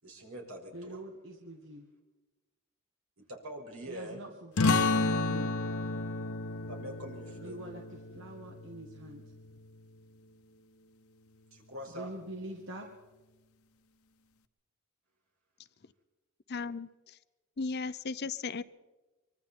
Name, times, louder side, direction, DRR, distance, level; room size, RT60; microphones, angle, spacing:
voice 1, 0.0-1.0 3.2-4.2 6.7-7.6 11.5-12.1, right 1 dB, 80° right, 0 dB, 5.7 m, -44 dB
voice 2, 0.7-1.9 3.9-5.5 7.4-9.3 11.9-12.9, right 1 dB, 60° right, 2 dB, 1.7 m, -45 dB
sound 1, 4.6-9.8, left 3 dB, 85° left, 0.9 m, -32 dB
voice 3, 16.5-17.2 17.6-18.6, left 4 dB, 50° left, 15 dB, 0.6 m, -36 dB
24.5 x 24.0 x 4.4 m, 1.2 s
head